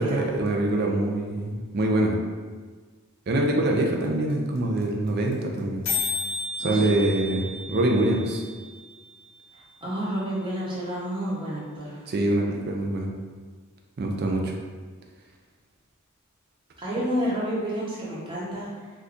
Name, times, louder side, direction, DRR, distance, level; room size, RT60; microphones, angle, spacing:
voice 1, 0.0-2.2 3.3-5.8 6.6-8.4 12.1-13.1 14.0-14.5, right 1 dB, 50° right, 1 dB, 0.4 m, -24 dB
sound 1, 3.8-3.9 4.0-4.1 4.3-4.6 4.8-4.9 5.1-5.3 5.6-5.7 5.8-9.8, left 3 dB, 75° left, 0.7 m, -33 dB
voice 2, 6.6-7.0 9.5-12.1 16.8-18.9, equal, 25° right, -8 dB, 0.8 m, -30 dB
2.7 x 2.4 x 3.5 m, 1.5 s
head